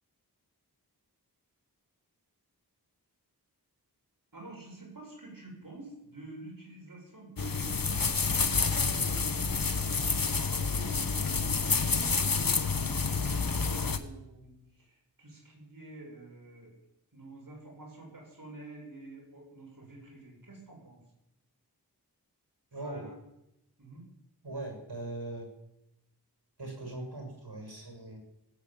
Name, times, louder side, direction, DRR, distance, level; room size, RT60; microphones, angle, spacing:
voice 1, 4.3-8.0 8.4-9.8 10.4-16.8 17.1-21.0 22.7-23.1 23.8-24.0, right 2 dB, 55° right, -2 dB, 6.9 m, -48 dB
sound 1, 7.4-14.0, left 5 dB, 60° left, 1.2 m, -29 dB
voice 2, 22.7-23.1 24.4-25.5 26.6-28.2, right 2 dB, 75° right, 1 dB, 6.7 m, -40 dB
19.0 x 8.6 x 9.0 m, 0.86 s
wide cardioid pair, 60°, 39 cm